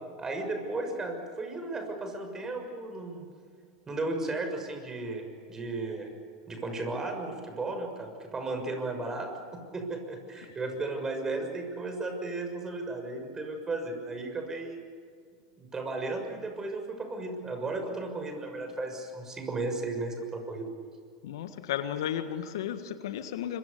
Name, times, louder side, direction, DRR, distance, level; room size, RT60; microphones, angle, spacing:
voice 1, 0.2-3.3 3.9-6.1 6.5-14.8 15.6-20.7, right 2 dB, 20° right, 5 dB, 6.4 m, -35 dB
voice 2, 21.2-23.6, left 10 dB, 70° left, 9 dB, 1.7 m, -34 dB
26.0 x 24.0 x 6.9 m, 2.1 s
hypercardioid pair, 90°, 2 cm